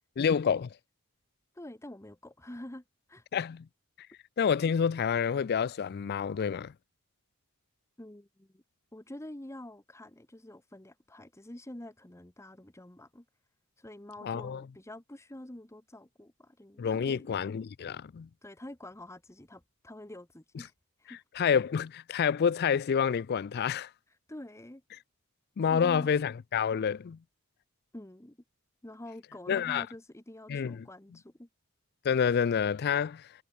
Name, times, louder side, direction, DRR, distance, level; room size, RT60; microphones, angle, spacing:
voice 1, 0.2-0.7 3.3-3.7 4.4-6.7 14.2-14.6 16.8-18.3 21.4-23.9 25.6-27.2 29.5-29.9 30.5-30.9 32.0-33.3, left 7 dB, 45° left, 0.4 m, -28 dB
voice 2, 1.5-3.2 8.0-8.6 8.9-13.2 13.8-17.3 18.4-20.7 21.0-21.2 24.3-24.8 25.7-26.1 27.9-28.4 28.8-31.5, left 1 dB, 15° left, 1.1 m, -47 dB
head